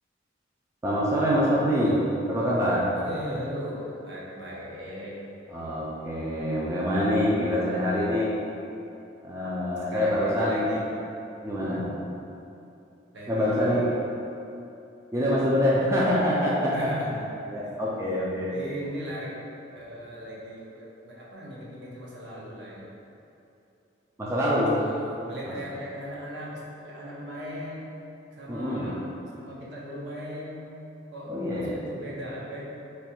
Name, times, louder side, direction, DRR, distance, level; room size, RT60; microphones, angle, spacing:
voice 1, 0.8-2.9 5.5-8.3 9.2-10.7 11.4-11.9 13.3-13.9 15.1-16.9 17.2-18.5 24.2-24.8 28.5-28.9 31.3-31.8, equal, 15° right, -7 dB, 0.4 m, -25 dB
voice 2, 2.9-5.2 9.4-10.9 11.5-11.9 13.1-14.0 16.7-17.2 18.5-19.4 19.7-22.9 24.7-27.9 28.4-30.7 31.1-32.6, equal, 65° right, -5 dB, 0.7 m, -38 dB
3.2 x 2.3 x 4.3 m, 2.7 s
head